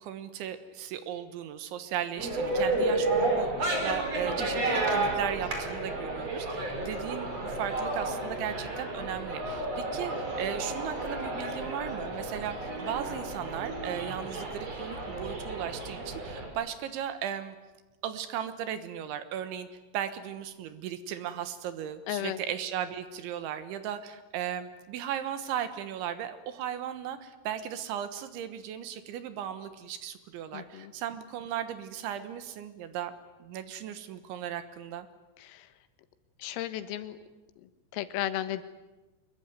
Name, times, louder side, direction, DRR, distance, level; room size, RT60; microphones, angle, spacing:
voice 1, 0.0-12.6 12.8-17.6 18.0-19.7 19.9-33.1 33.4-35.1, right 10 dB, 75° right, 11 dB, 3.4 m, -36 dB
sound 1, 2.2-16.5, right 2 dB, 30° right, 5.5 m, -32 dB
voice 2, 22.1-22.4 30.5-30.9 35.4-35.7 36.4-37.2 37.9-38.6, left 13 dB, 85° left, 11 dB, 4.0 m, -34 dB
25.5 x 22.0 x 9.5 m, 1.1 s
omnidirectional pair, 5.9 m